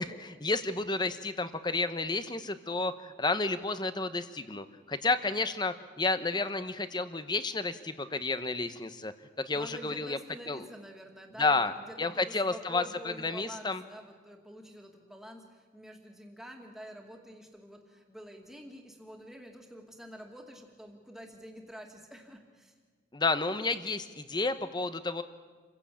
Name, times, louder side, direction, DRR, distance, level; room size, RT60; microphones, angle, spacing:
voice 1, 0.0-9.1 9.4-10.2 10.5-10.6 11.4-11.7 12.0-13.8 23.1-25.2, left 3 dB, 20° left, 11 dB, 1.0 m, -31 dB
voice 2, 9.5-22.7, equal, ahead, 2 dB, 2.3 m, -48 dB
28.0 x 16.0 x 8.7 m, 1.5 s
head